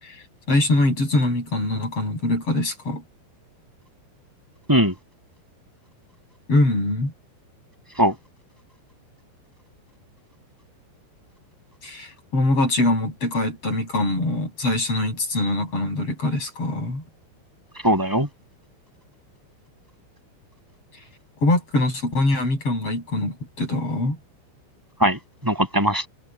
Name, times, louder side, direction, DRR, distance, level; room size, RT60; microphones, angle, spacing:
voice 1, 0.0-3.0 6.5-7.1 11.8-17.0 21.4-24.2, left 2 dB, 30° left, 8.4 m, -23 dB
voice 2, 17.8-18.3 25.0-26.1, right 1 dB, 5° right, 7.3 m, -20 dB
omnidirectional pair, 5.4 m